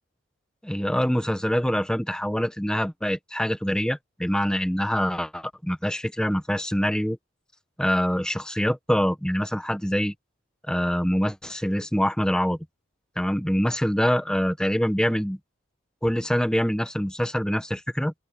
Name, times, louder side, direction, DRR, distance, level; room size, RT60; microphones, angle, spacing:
voice 1, 0.6-7.2 7.8-10.1 10.7-12.6 13.2-15.4 16.0-18.1, equal, 5° left, 0.9 m, -25 dB
open air
head